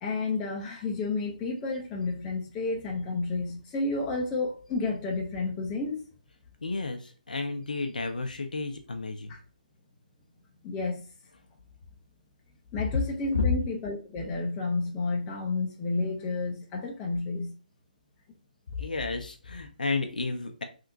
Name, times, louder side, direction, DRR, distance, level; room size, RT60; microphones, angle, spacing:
voice 1, 0.0-6.1 9.3-9.4 10.6-11.1 12.7-17.5, left 3 dB, 15° left, 0.7 m, -31 dB
voice 2, 6.6-9.4 13.3-13.5 18.7-20.6, left 3 dB, 65° left, 0.7 m, -31 dB
3.4 x 2.7 x 2.6 m
figure-of-eight pair, 140°, 5 cm